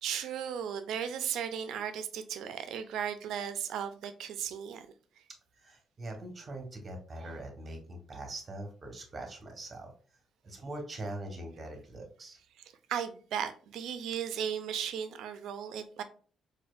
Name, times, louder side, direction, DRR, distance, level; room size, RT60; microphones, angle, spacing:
voice 1, 0.0-4.9 12.9-16.0, right 8 dB, 80° right, 10 dB, 0.4 m, -36 dB
voice 2, 5.6-9.9 10.4-12.4, right 1 dB, 35° right, 4 dB, 1.0 m, -42 dB
4.2 x 2.5 x 2.4 m, 0.41 s
cardioid pair, 90°, 0 cm